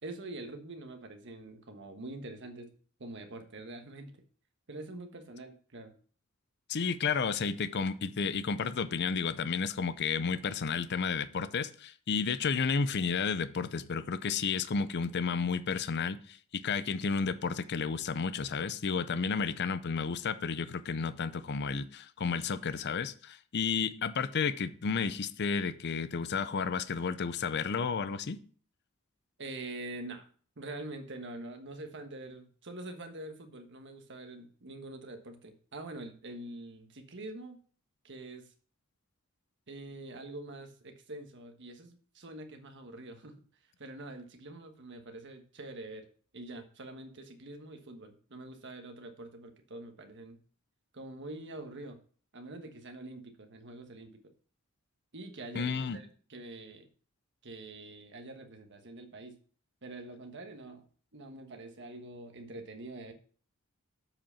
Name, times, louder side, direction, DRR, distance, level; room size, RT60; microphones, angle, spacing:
voice 1, 0.0-2.7 3.0-4.1 4.7-5.9 29.4-30.3 30.6-37.6 38.0-38.5 39.7-43.3 43.8-46.0 46.3-50.4 50.9-52.0 52.3-54.3 55.1-56.9 57.4-59.4 59.8-60.8 61.1-63.1, right 2 dB, 60° right, 6 dB, 1.3 m, -45 dB
voice 2, 6.7-16.4 16.6-28.4 55.5-56.0, left 5 dB, 50° left, 13 dB, 0.5 m, -32 dB
7.4 x 5.0 x 5.7 m, 0.43 s
head